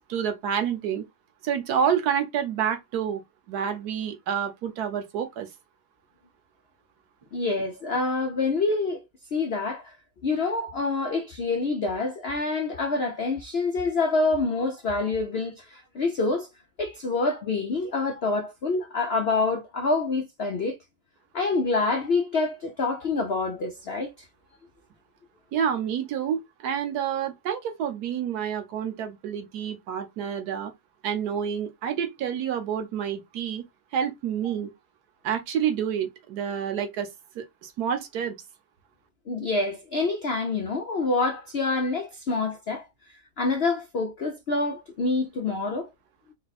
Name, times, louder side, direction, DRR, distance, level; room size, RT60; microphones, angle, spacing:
voice 1, 0.1-1.0 1.4-3.2 3.5-5.5 25.5-30.7 31.0-33.7 33.9-34.7 35.2-37.1 37.3-38.3, right 8 dB, 60° right, 1.3 m, -28 dB
voice 2, 7.3-9.0 9.3-9.9 10.2-16.5 16.8-20.8 21.3-24.3 34.4-34.5 39.3-45.9, left 3 dB, 90° left, 0.5 m, -27 dB
4.3 x 2.2 x 4.0 m
omnidirectional pair, 2.0 m